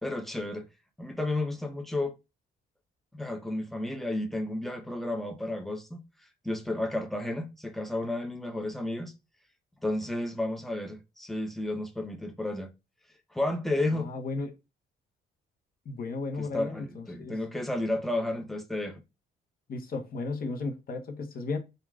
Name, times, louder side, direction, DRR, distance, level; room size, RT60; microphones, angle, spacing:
voice 1, 0.0-0.6 1.0-2.1 3.1-6.0 6.4-9.1 9.8-12.7 13.3-14.1 16.4-19.0, left 1 dB, ahead, 0.5 m, -32 dB
voice 2, 13.9-14.5 15.8-17.3 19.7-21.6, left 3 dB, 50° left, 0.8 m, -34 dB
3.0 x 2.3 x 2.3 m
cardioid pair, 90°, 20 cm